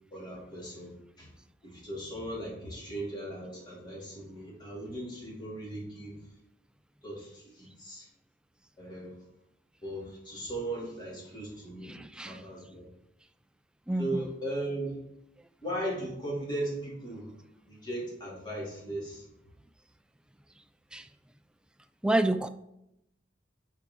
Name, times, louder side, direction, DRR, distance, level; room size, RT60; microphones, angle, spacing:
voice 1, 0.1-1.3 1.6-6.2 7.0-8.1 8.8-9.2 9.8-12.9 14.0-15.0 15.6-17.3 17.7-19.2, right 1 dB, 25° left, -5 dB, 2.7 m, -38 dB
voice 2, 11.8-12.4 13.9-14.1 20.9-21.0 22.0-22.5, right 1 dB, 5° right, 9 dB, 0.3 m, -28 dB
8.4 x 4.7 x 3.8 m, 0.81 s
head